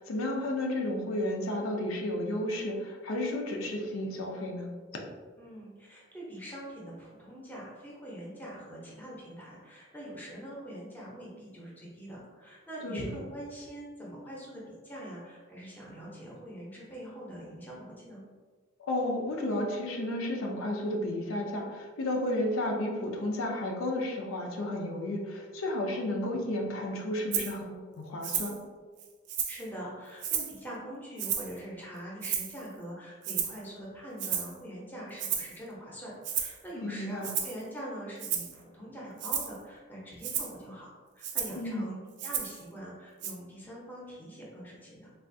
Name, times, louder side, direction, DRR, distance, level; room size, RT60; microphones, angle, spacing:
voice 1, 0.0-4.7 12.8-13.1 18.8-28.6 36.8-37.3 41.6-41.9, left 1 dB, 85° left, 1 dB, 0.5 m, -32 dB
voice 2, 5.4-18.2 29.5-45.1, equal, 10° left, -5 dB, 0.6 m, -43 dB
Rattle (instrument), 27.3-27.5 28.2-28.6 29.0-29.7 30.2-30.6 31.2-31.6 32.2-32.7 33.2-33.6 34.2-34.6 35.2-35.6 36.2-36.6 37.2-37.6 38.2-38.5 39.2-39.6 40.2-40.5 41.2-41.6 42.2-42.6 43.2-43.3, right 8 dB, 55° right, 0.3 m, -33 dB
3.3 x 2.4 x 2.6 m, 1.5 s
head